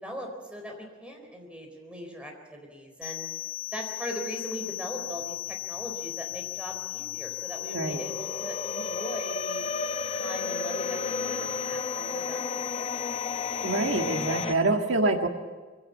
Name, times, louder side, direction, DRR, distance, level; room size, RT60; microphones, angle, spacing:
voice 1, 0.0-3.3 3.7-9.7 10.2-13.0, equal, 5° right, 1 dB, 4.1 m, -40 dB
sound 1, 3.0-14.4, left 14 dB, 75° left, 2.4 m, -36 dB
sound 2, 5.2-6.0 6.3-14.5, left 3 dB, 30° left, 0.8 m, -35 dB
voice 2, 13.6-15.3, right 2 dB, 65° right, 4 dB, 1.7 m, -26 dB
22.5 x 16.5 x 8.4 m, 1.3 s
head